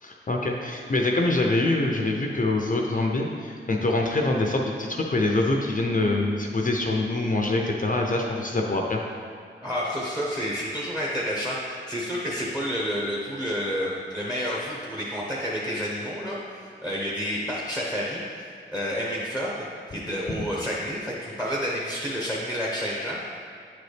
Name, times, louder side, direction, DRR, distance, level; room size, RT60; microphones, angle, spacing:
voice 1, 0.0-9.0 19.9-20.0 20.3-20.4, left 2 dB, 40° left, 1 dB, 0.6 m, -25 dB
voice 2, 9.6-16.4 16.8-23.3, equal, 5° right, -4 dB, 1.1 m, -30 dB
8.8 x 4.0 x 3.4 m, 2.3 s
cardioid pair, 50°, 21 cm